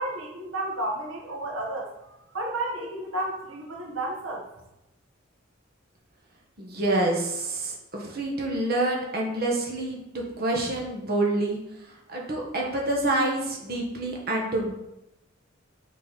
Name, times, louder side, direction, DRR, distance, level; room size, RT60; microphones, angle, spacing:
voice 1, 0.0-4.4, right 1 dB, 80° right, -1 dB, 1.6 m, -32 dB
voice 2, 6.6-11.6 11.9-14.7, right 2 dB, 50° right, -1 dB, 1.7 m, -27 dB
6.9 x 6.6 x 4.3 m, 0.91 s
head